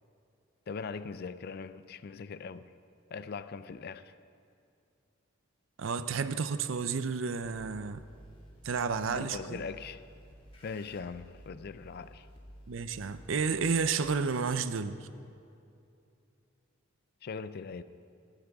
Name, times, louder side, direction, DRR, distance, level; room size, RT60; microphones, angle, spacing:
voice 1, 0.7-2.7 3.1-4.1 9.0-10.0 10.6-12.3 17.2-17.8, left 5 dB, 50° left, 0.4 m, -40 dB
voice 2, 5.8-8.0 8.6-9.6 12.7-15.1, right 5 dB, 70° right, 0.5 m, -31 dB
sound 1, 7.4-14.6, equal, 25° left, 1.9 m, -54 dB
19.5 x 11.5 x 3.6 m
head